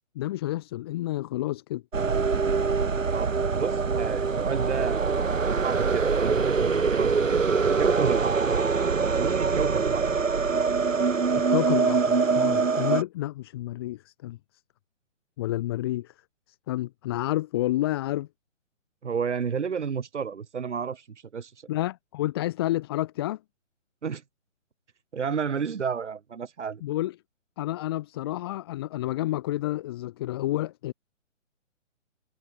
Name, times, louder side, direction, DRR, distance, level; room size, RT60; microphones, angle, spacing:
voice 1, 0.1-1.8 11.3-14.4 15.4-16.1 16.7-18.3 21.7-23.4 26.8-27.1 27.6-30.9, left 15 dB, 20° left, 1.0 m, -29 dB
sound 1, 1.9-13.0, right 5 dB, 75° right, 4.8 m, -24 dB
voice 2, 3.1-8.5 9.2-10.0 19.0-21.0 21.3-21.5 24.0-24.2 25.1-26.8, right 6 dB, 60° right, 5.5 m, -31 dB
hypercardioid pair, 155°, 39 cm